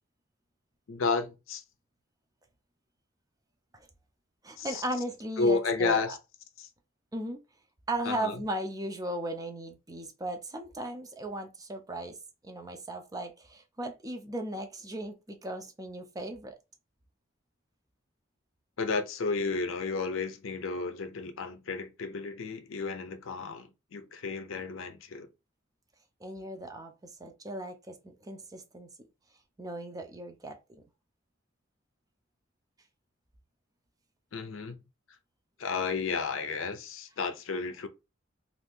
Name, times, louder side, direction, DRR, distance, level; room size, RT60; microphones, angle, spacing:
voice 1, 0.9-1.6 4.6-4.8 5.4-6.2 6.6-6.7 8.1-8.3 18.8-25.3 34.3-34.8 35.6-37.9, left 4 dB, 75° left, 0.5 m, -32 dB
voice 2, 4.4-6.2 7.1-7.4 7.9-12.2 12.4-16.6 26.2-28.9 29.6-30.8, right 1 dB, 20° right, 0.5 m, -37 dB
2.7 x 2.5 x 3.5 m
head